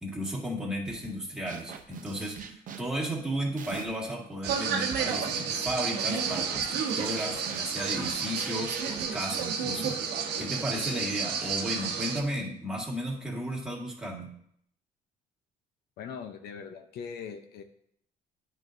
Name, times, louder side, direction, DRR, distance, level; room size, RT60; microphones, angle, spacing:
voice 1, 0.0-10.0 10.4-14.4, equal, 5° right, -4 dB, 2.0 m, -34 dB
sound 1, 0.9-1.2 1.5-4.1 4.5-10.2, right 7 dB, 50° right, 0.7 m, -45 dB
sound 2, 4.4-12.2, right 6 dB, 85° right, 1.0 m, -31 dB
voice 2, 16.0-17.6, left 6 dB, 70° left, 6 dB, 0.7 m, -40 dB
10.5 x 4.6 x 2.6 m, 0.69 s
cardioid pair, 110°, 17 cm